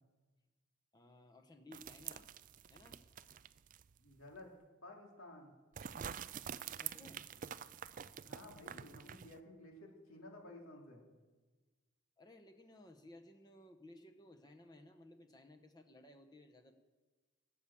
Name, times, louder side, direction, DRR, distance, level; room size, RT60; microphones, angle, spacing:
voice 1, 0.9-2.3 2.7-3.0 6.7-7.3 12.2-16.7, left 1 dB, 20° left, 5 dB, 1.1 m, -58 dB
sound 1, 1.7-4.0 4.3-4.4 5.8-9.4, right 8 dB, 40° right, 0.4 m, -47 dB
voice 2, 4.0-4.5 4.8-5.5 8.2-11.1, left 1 dB, 85° left, 0 dB, 2.9 m, -54 dB
18.5 x 8.6 x 7.1 m, 1.3 s
head